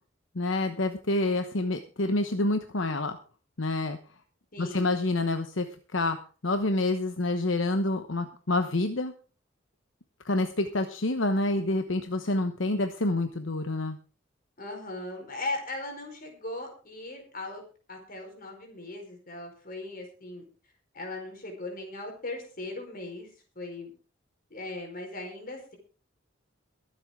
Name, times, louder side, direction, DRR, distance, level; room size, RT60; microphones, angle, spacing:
voice 1, 0.3-3.2 3.6-4.0 4.6-5.7 5.9-6.2 6.4-9.1 10.2-14.0, left 2 dB, 75° left, 7 dB, 1.1 m, -27 dB
voice 2, 4.5-4.9 14.6-17.6 17.9-20.4 20.9-23.9 24.5-25.8, left 2 dB, 45° left, 3 dB, 4.7 m, -38 dB
22.5 x 8.0 x 3.8 m, 0.37 s
head